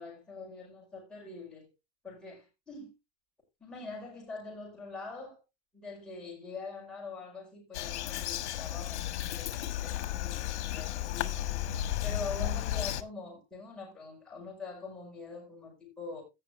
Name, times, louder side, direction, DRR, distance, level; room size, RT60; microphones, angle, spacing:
voice 1, 0.0-1.7 2.0-2.9 3.6-5.4 5.7-11.4 12.0-16.2, left 3 dB, ahead, 5.0 m, -44 dB
Bird vocalization bird call bird song, 7.7-13.0, left 12 dB, 75° left, 1.4 m, -34 dB
17.0 x 6.0 x 3.1 m
supercardioid pair, 180°, 34 cm